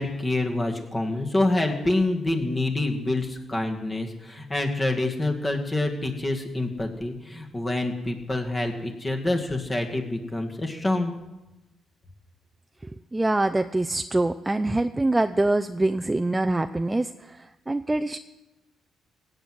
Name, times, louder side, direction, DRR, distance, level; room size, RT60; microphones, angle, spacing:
voice 1, 0.0-11.1, left 2 dB, 20° left, 3 dB, 2.2 m, -27 dB
voice 2, 13.1-17.1 17.7-18.2, right 2 dB, 15° right, 7 dB, 0.5 m, -24 dB
17.0 x 8.0 x 7.6 m, 0.99 s
cardioid pair, 90°, 0 cm